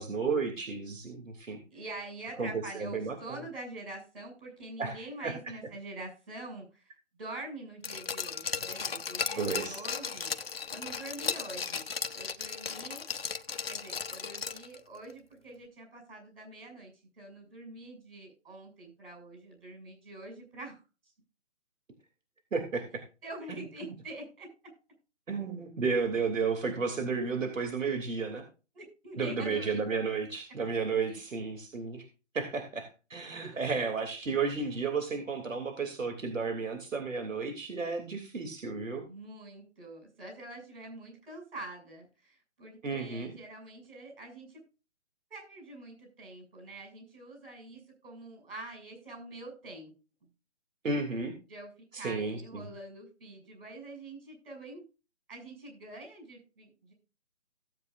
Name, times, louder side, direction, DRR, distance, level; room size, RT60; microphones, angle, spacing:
voice 1, 0.0-1.6 2.4-3.1 4.8-5.0 5.2-5.3 9.4-9.8 22.5-22.8 23.5-23.6 25.3-28.4 29.2-32.0 32.3-39.0 42.8-43.3 50.8-51.3 51.9-52.7, right 4 dB, 90° right, 5 dB, 3.1 m, -32 dB
voice 2, 1.7-10.4 10.7-11.8 12.1-13.1 13.7-21.1 23.2-24.5 28.7-29.8 31.0-31.2 33.4-33.6 39.1-44.6 45.3-49.9 51.5-51.7 52.0-54.8 55.3-56.9, right 2 dB, 50° right, 4 dB, 7.3 m, -45 dB
Glass, 7.8-14.8 15.1-15.2, left 6 dB, 50° left, 1.0 m, -36 dB
17.0 x 8.6 x 2.6 m, 0.32 s
hypercardioid pair, 180°, 38 cm